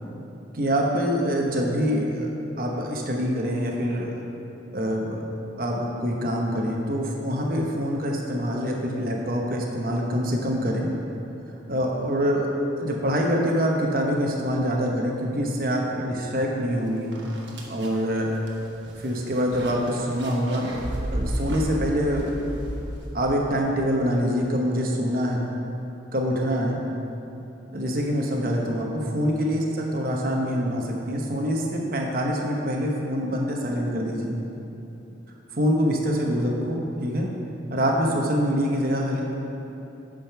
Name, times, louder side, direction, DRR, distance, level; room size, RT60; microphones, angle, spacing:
voice 1, 0.5-2.3 2.6-4.1 4.7-5.2 5.6-10.9 11.7-12.5 12.8-17.2 17.7-18.3 18.9-20.7 21.1-22.3 23.1-25.5 26.1-26.8 27.7-34.4 35.5-37.3 37.7-39.3, equal, 45° right, -1 dB, 1.0 m, -25 dB
sound 1, 16.6-16.7 17.1-23.5, equal, 70° right, 1.1 m, -33 dB
9.1 x 5.1 x 5.8 m, 2.9 s
head